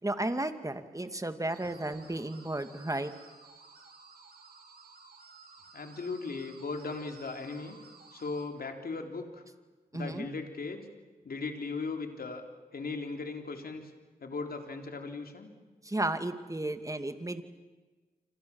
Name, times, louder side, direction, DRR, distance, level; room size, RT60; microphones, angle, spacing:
voice 1, 0.0-3.1 9.9-10.3 15.8-17.4, right 1 dB, 20° right, 8 dB, 2.4 m, -33 dB
sound 1, 1.5-8.5, right 4 dB, 75° right, 4.0 m, -55 dB
voice 2, 5.7-7.8 8.1-9.4 9.9-10.9 11.2-12.4 12.7-13.8 14.2-15.5, left 4 dB, 70° left, 4 dB, 3.6 m, -38 dB
30.0 x 26.5 x 7.3 m, 1.3 s
cardioid pair, 45°, 16 cm